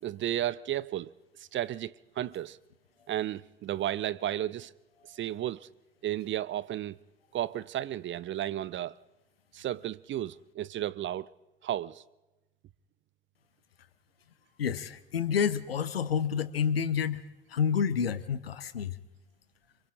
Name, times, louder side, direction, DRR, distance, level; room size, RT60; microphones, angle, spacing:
voice 1, 0.0-2.6 3.1-4.7 5.1-5.7 6.0-7.0 7.3-9.0 9.5-11.3 11.6-12.0, right 12 dB, 40° right, 0.7 m, -33 dB
voice 2, 14.6-17.2 17.5-19.0, left 7 dB, 80° left, 0.9 m, -29 dB
27.5 x 25.0 x 3.7 m
figure-of-eight pair, 50°, 29 cm